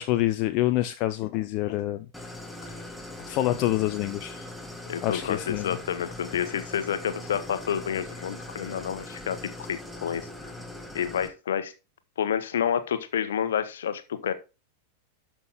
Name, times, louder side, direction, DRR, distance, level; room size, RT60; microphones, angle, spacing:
voice 1, 0.0-2.1 2.6-2.8 3.3-4.5 5.0-5.8, left 15 dB, 40° left, 0.7 m, -27 dB
Idling, 2.1-11.3, left 1 dB, ahead, 1.8 m, -41 dB
voice 2, 4.9-9.4 9.7-10.3 10.9-11.7 12.2-14.3, left 8 dB, 60° left, 1.2 m, -29 dB
12.5 x 6.0 x 3.6 m
figure-of-eight pair, 90°, 0 cm